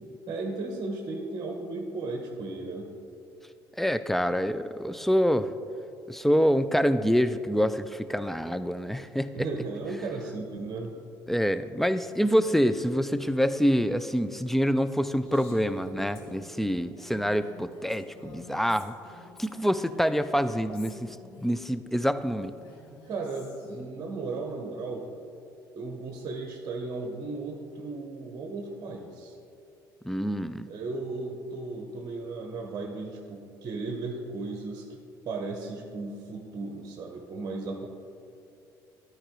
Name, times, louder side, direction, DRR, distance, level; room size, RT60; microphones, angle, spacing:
voice 1, 0.3-2.9 9.3-11.0 12.2-12.3 22.9-25.1 25.8-29.4 30.7-35.0 35.2-37.9, right 3 dB, 40° right, 3 dB, 0.9 m, -35 dB
voice 2, 3.8-5.5 6.1-9.5 11.3-18.9 19.4-22.5 30.0-30.7, equal, ahead, 12 dB, 0.3 m, -26 dB
Female speech woman speaking, 15.2-21.6 22.4-23.8, left 3 dB, 65° left, 1.4 m, -50 dB
12.5 x 4.7 x 3.7 m, 2.6 s
figure-of-eight pair, 55°, 11 cm